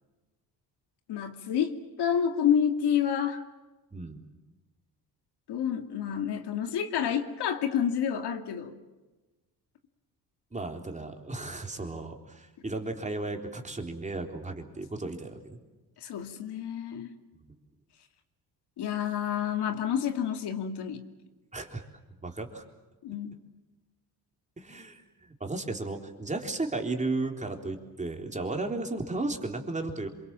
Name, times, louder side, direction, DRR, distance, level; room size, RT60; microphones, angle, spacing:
voice 1, 1.1-3.4 5.5-8.7 16.0-17.1 18.8-21.0 23.0-23.4, left 8 dB, 70° left, 6 dB, 2.4 m, -29 dB
voice 2, 3.9-4.2 10.5-15.6 21.5-21.8 22.2-22.6 24.6-30.1, right 2 dB, 15° right, 3 dB, 3.7 m, -34 dB
27.0 x 23.5 x 7.5 m, 1.2 s
cardioid pair, 100°, 41 cm